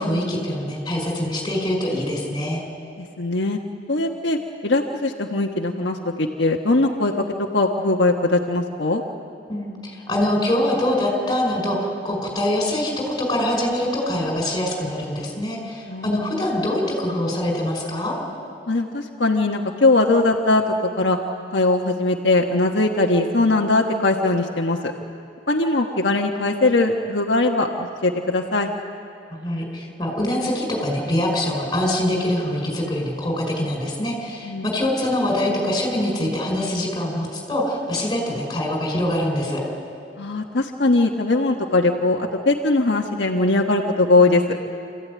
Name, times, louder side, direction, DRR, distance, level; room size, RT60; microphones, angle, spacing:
voice 1, 0.0-2.6 9.5-18.2 29.3-39.6, left 1 dB, 20° left, 0 dB, 5.4 m, -24 dB
voice 2, 3.0-3.6 3.9-4.4 4.6-7.2 7.5-9.0 15.9-16.3 18.7-21.2 21.5-24.9 25.5-28.7 34.4-34.7 40.2-44.6, left 2 dB, 80° left, 1 dB, 1.4 m, -20 dB
27.5 x 14.5 x 9.5 m, 2.5 s
head